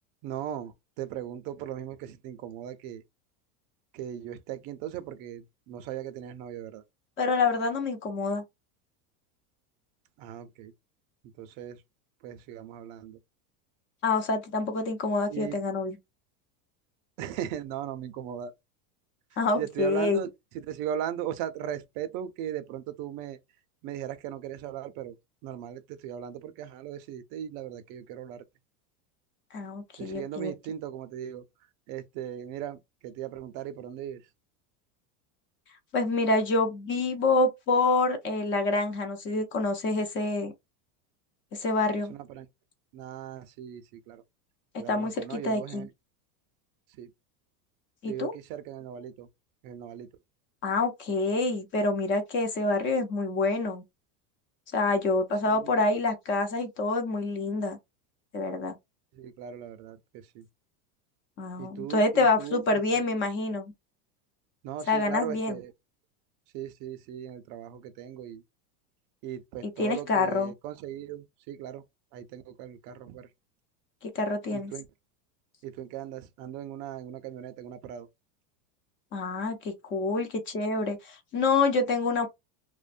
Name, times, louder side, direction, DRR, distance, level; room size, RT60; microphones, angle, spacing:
voice 1, 0.2-3.0 3.9-6.8 10.2-10.7 11.4-11.8 12.2-13.2 15.3-15.6 17.2-18.5 19.6-23.4 23.8-25.2 25.4-28.5 30.0-31.4 31.9-34.2 42.1-42.5 42.9-44.2 44.8-45.9 47.0-47.1 48.0-49.3 49.6-50.1 55.4-55.8 59.1-60.5 61.6-63.0 64.6-65.7 66.5-68.4 69.2-71.8 72.1-73.3 74.5-74.9 75.6-78.1, right 10 dB, 45° right, 0.5 m, -38 dB
voice 2, 7.2-8.4 14.0-16.0 19.4-20.2 29.5-30.5 35.9-40.5 41.5-42.1 44.9-45.9 48.0-48.3 50.6-53.8 54.7-57.8 58.3-58.8 61.4-63.7 64.9-65.6 69.8-70.5 74.0-74.7 79.1-82.3, left 3 dB, 25° left, 0.5 m, -27 dB
2.5 x 2.2 x 2.4 m
supercardioid pair, 135°, 47 cm